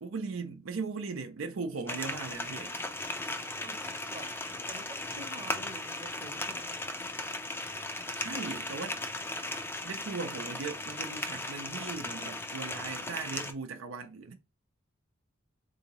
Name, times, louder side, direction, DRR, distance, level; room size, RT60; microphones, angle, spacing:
voice 1, 0.0-2.7 8.2-9.0 9.8-14.3, right 4 dB, 90° right, 0.6 m, -38 dB
sound 1, 1.9-13.5, left 2 dB, 10° left, 0.4 m, -37 dB
voice 2, 4.1-4.4 4.7-6.6 10.3-10.4, right 1 dB, 25° right, 0.7 m, -48 dB
3.7 x 2.7 x 2.9 m
head